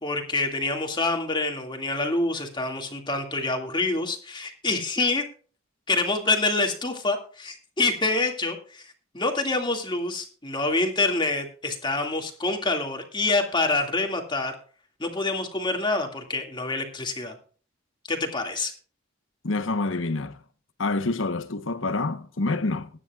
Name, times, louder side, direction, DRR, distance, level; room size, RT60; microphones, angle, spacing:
voice 1, 0.0-5.3 5.9-14.5 15.0-17.4 18.1-18.7, left 3 dB, 25° left, 2.2 m, -26 dB
voice 2, 19.4-20.4 20.8-22.9, left 3 dB, 90° left, 1.1 m, -27 dB
20.5 x 10.0 x 2.4 m
head